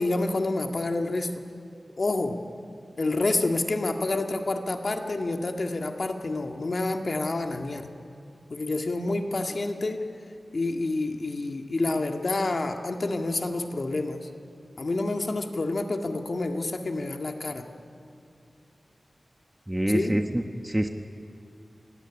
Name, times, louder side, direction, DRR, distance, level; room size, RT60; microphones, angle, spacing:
voice 1, 0.0-1.3 2.0-2.4 3.0-7.9 8.5-10.0 10.5-14.3 14.8-17.7 19.9-20.2, left 2 dB, 60° left, 4 dB, 2.0 m, -28 dB
voice 2, 19.7-20.9, right 1 dB, 10° right, 5 dB, 1.2 m, -26 dB
28.0 x 17.5 x 10.0 m, 2.6 s
wide cardioid pair, 75°, 0 cm